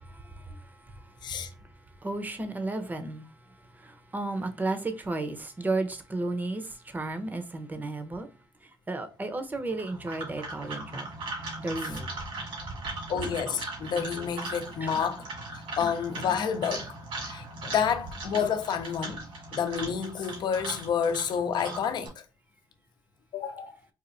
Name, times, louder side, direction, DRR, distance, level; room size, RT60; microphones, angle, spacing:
voice 1, 0.1-0.6 2.0-3.3 3.8-8.3 8.9-11.1 11.6-12.1 14.8-14.9 15.8-15.9, right 2 dB, 20° right, 0.7 m, -33 dB
sound 1, 9.7-22.1, right 2 dB, 85° right, 2.0 m, -39 dB
voice 2, 13.1-15.3 15.5-16.9 17.3-19.2 19.5-22.1 23.3-23.7, left 7 dB, 60° left, 0.7 m, -29 dB
4.2 x 2.4 x 2.5 m
cardioid pair, 100°, 9 cm